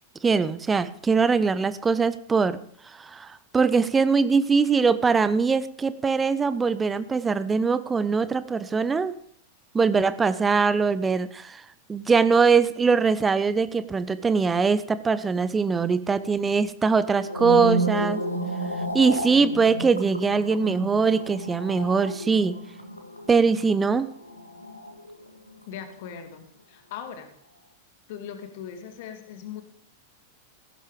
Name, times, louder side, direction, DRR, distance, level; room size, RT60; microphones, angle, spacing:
voice 1, 0.2-2.6 3.0-9.1 9.7-11.6 11.9-18.2 18.9-22.5 23.3-24.1, right 5 dB, 15° right, 15 dB, 0.9 m, -22 dB
sound 1, 17.2-25.5 25.8-26.2, right 1 dB, 85° left, 1.9 m, -32 dB
voice 2, 25.7-27.3 28.1-29.6, left 8 dB, 50° left, 7 dB, 2.4 m, -39 dB
15.5 x 11.5 x 5.0 m, 0.64 s
figure-of-eight pair, 90°, 0 cm